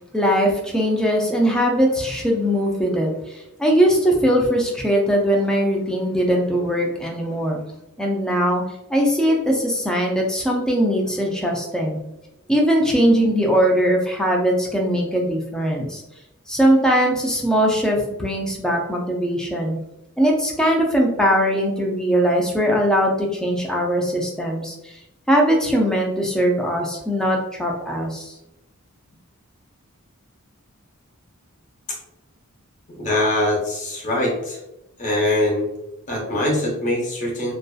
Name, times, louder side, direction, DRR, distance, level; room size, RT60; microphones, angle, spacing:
voice 1, 0.1-7.6 8.0-8.6 8.9-12.0 12.5-16.0 16.5-19.8 20.2-24.9 25.3-28.3, equal, 5° left, -1 dB, 0.3 m, -20 dB
voice 2, 33.0-34.6 35.0-35.7 36.1-37.5, left 1 dB, 35° left, -3 dB, 0.8 m, -22 dB
2.6 x 2.2 x 2.3 m, 0.87 s
head